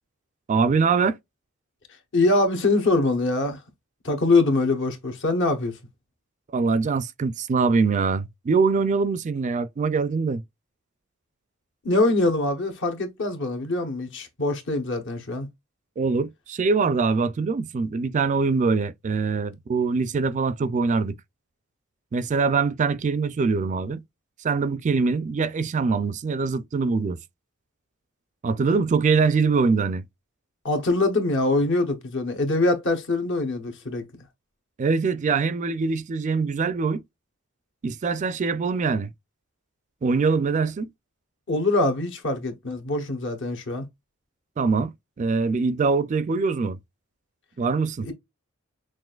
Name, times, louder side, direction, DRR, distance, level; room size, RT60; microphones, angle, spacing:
voice 1, 0.5-1.2 6.5-10.4 16.0-21.1 22.1-24.0 24.4-27.2 28.4-30.0 34.8-37.0 37.8-39.1 40.0-40.9 44.6-46.8 47.6-48.1, right 4 dB, 35° right, 0.3 m, -23 dB
voice 2, 2.1-3.6 4.0-5.7 11.8-15.5 30.6-34.0 41.5-43.9 48.0-48.1, left 2 dB, 60° left, 1.1 m, -23 dB
6.1 x 2.5 x 2.3 m
head